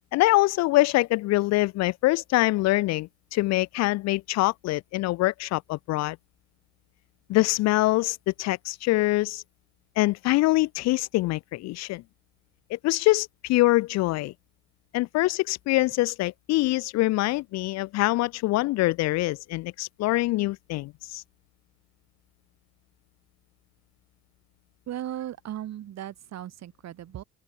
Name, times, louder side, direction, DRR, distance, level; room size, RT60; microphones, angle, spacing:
voice 1, 0.1-6.2 7.3-9.4 10.0-12.0 12.7-14.3 14.9-21.2, left 19 dB, 60° left, 0.5 m, -24 dB
voice 2, 24.9-27.2, right 12 dB, 60° right, 7.1 m, -36 dB
open air
hypercardioid pair, 65°, 30 cm